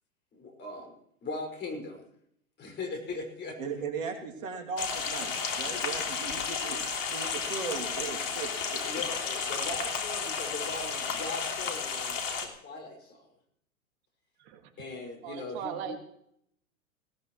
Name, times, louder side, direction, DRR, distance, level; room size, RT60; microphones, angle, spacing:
voice 1, 0.3-0.9 1.2-2.1 2.6-3.6 8.8-12.3 12.6-13.3 14.8-15.9, left 3 dB, 25° left, 2 dB, 5.6 m, -39 dB
voice 2, 3.6-6.8 7.1-9.0, right 5 dB, 65° right, 3 dB, 2.9 m, -38 dB
sound 1, 4.8-12.5, left 5 dB, 65° left, 3.3 m, -32 dB
voice 3, 15.2-16.0, right 8 dB, 50° right, 5 dB, 2.1 m, -38 dB
19.0 x 19.0 x 3.1 m, 0.71 s
figure-of-eight pair, 105°, 41 cm